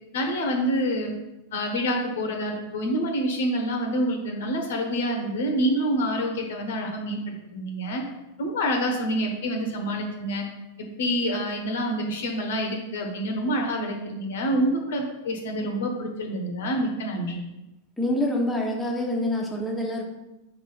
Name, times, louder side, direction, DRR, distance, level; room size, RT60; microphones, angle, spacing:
voice 1, 0.1-1.1 1.5-8.0 8.4-10.4 11.0-17.4, equal, 60° left, 3 dB, 1.0 m, -27 dB
voice 2, 18.0-20.0, left 1 dB, 5° left, -2 dB, 1.1 m, -26 dB
4.5 x 4.0 x 5.6 m, 0.97 s
figure-of-eight pair, 90°, 0 cm